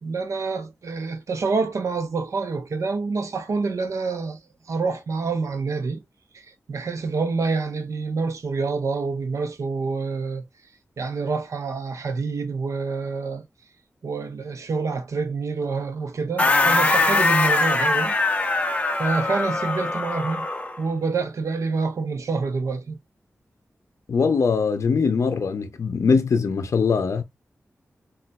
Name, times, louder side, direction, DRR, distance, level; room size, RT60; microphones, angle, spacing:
voice 1, 0.0-4.4 4.7-6.0 6.7-10.4 11.0-13.4 14.0-18.2 19.0-20.5 20.8-23.0, right 4 dB, 85° right, 0.7 m, -27 dB
sound 1, 16.4-20.8, left 3 dB, 25° left, 0.5 m, -22 dB
voice 2, 24.1-27.2, left 5 dB, 75° left, 0.5 m, -21 dB
4.0 x 2.3 x 2.2 m
wide cardioid pair, 125°, 5 cm